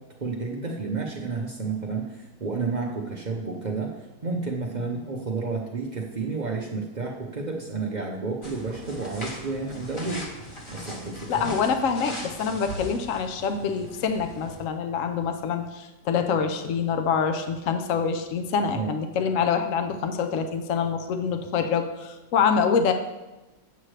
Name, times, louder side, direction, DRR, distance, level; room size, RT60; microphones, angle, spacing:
voice 1, 0.0-10.3 10.7-11.5 18.7-18.9, right 4 dB, 70° right, -1 dB, 0.4 m, -31 dB
sound 1, 8.4-14.6, equal, 20° left, 0.9 m, -39 dB
voice 2, 11.3-22.9, left 6 dB, 65° left, 6 dB, 0.8 m, -25 dB
8.2 x 7.5 x 3.2 m, 1.0 s
omnidirectional pair, 1.9 m